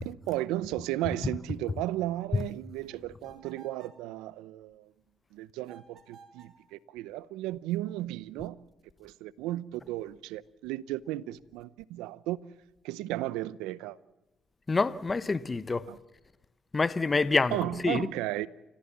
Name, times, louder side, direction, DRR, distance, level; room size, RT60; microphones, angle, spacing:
voice 1, 0.0-4.9 5.3-8.6 9.0-12.4 12.8-14.0 15.9-16.0 17.5-18.5, right 15 dB, 85° right, 0.7 m, -34 dB
sound 1, 3.2-4.0 5.6-6.6, right 5 dB, 60° right, 3.4 m, -54 dB
voice 2, 14.7-15.9 16.7-18.1, left 3 dB, 30° left, 1.1 m, -27 dB
29.5 x 14.5 x 7.3 m
supercardioid pair, 65°, 0 cm